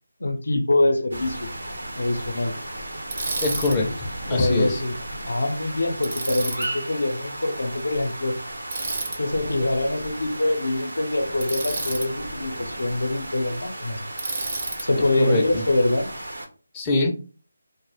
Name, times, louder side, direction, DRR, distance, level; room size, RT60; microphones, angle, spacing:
voice 1, 0.2-1.5 2.0-2.5 4.3-4.9 5.2-8.4 9.2-14.0 14.8-16.1, left 2 dB, 80° left, 0.5 m, -24 dB
sound 1, 1.1-16.5, right 1 dB, 85° right, 0.8 m, -35 dB
Bicycle, 3.1-3.8 6.0-6.7 8.7-9.2 11.4-12.1 14.2-14.9, right 3 dB, 55° right, 0.6 m, -30 dB
voice 2, 3.4-4.8 15.2-15.6 16.7-17.1, left 2 dB, 15° left, 0.4 m, -24 dB
2.2 x 2.0 x 3.0 m
figure-of-eight pair, 160°, 0 cm